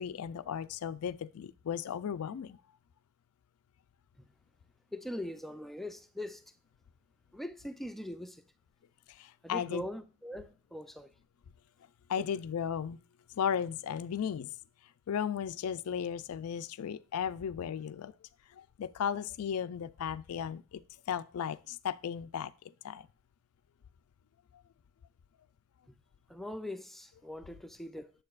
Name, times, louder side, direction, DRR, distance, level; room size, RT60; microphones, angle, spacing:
voice 1, 0.0-2.6 9.1-9.9 12.1-13.0 13.3-14.5 15.1-18.1 18.5-20.8 21.1-23.1, left 8 dB, 90° left, 0.4 m, -35 dB
voice 2, 4.9-6.5 7.3-8.4 9.4-11.1 12.2-12.3 25.9-26.0 26.3-28.1, left 1 dB, ahead, 0.4 m, -41 dB
7.7 x 6.6 x 2.4 m
head